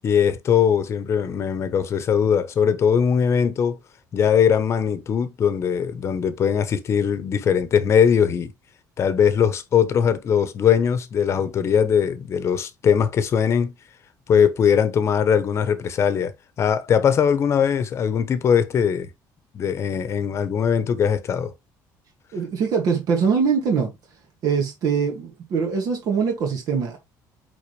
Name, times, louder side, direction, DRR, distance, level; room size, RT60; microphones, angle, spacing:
voice 1, 0.0-3.8 4.1-8.5 9.0-13.7 14.3-16.3 16.6-19.1 19.5-21.5, left 7 dB, 40° left, 1.0 m, -20 dB
voice 2, 22.3-23.9 24.4-27.0, right 6 dB, 55° right, 2.2 m, -23 dB
8.6 x 3.8 x 3.3 m
cardioid pair, 145°, 7 cm